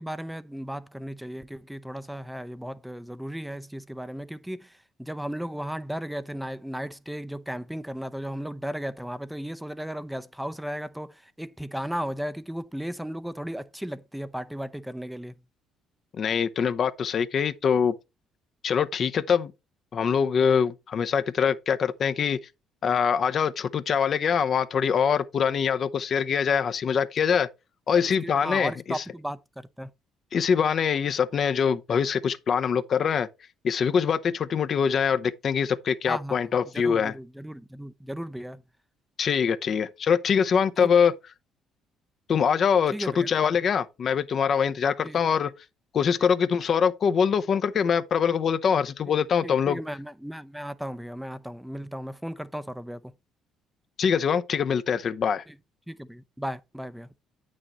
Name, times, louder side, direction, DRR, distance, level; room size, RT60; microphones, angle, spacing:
voice 1, 0.0-15.4 27.9-29.9 36.1-38.6 40.8-40.9 42.9-43.5 45.0-45.2 46.2-46.3 49.1-49.2 49.4-53.1 55.5-55.6 55.9-57.1, equal, 5° right, 0.6 m, -35 dB
voice 2, 16.1-17.9 18.6-19.5 19.9-22.4 22.8-27.5 27.9-29.0 30.3-33.3 33.6-37.1 39.2-41.1 42.3-45.5 45.9-49.8 54.0-55.4, left 7 dB, 50° left, 0.7 m, -24 dB
8.9 x 6.3 x 3.0 m
hypercardioid pair, 55°, 0 cm